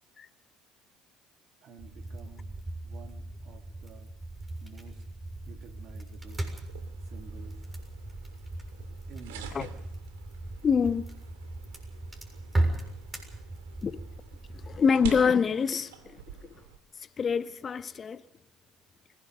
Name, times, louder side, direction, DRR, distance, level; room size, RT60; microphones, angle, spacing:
voice 1, 1.6-2.5 2.8-4.1 4.6-5.0 5.5-6.5 7.0-7.6 9.1-9.6, right 5 dB, 60° right, 3.2 m, -51 dB
sound 1, 1.8-14.8, right 1 dB, 20° right, 6.9 m, -37 dB
sound 2, 6.2-16.8, right 8 dB, 90° right, 2.4 m, -47 dB
voice 2, 10.6-11.0 13.8-14.0 14.7-16.2 17.2-18.2, left 6 dB, 40° left, 1.1 m, -25 dB
25.0 x 17.5 x 6.8 m
supercardioid pair, 75°, 0 cm